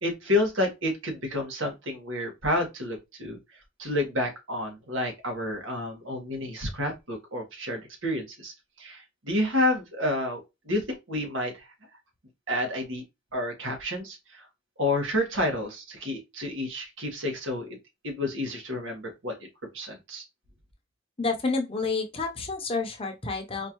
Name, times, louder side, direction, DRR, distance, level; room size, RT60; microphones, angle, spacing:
voice 1, 0.0-3.4 3.8-10.4 10.6-11.7 12.5-13.0 13.3-14.4 14.8-17.8 18.0-19.3 19.7-20.2, left 1 dB, 80° right, 1.5 m, -30 dB
voice 2, 21.2-23.7, left 4 dB, 30° left, 0.6 m, -29 dB
4.3 x 2.5 x 3.0 m
head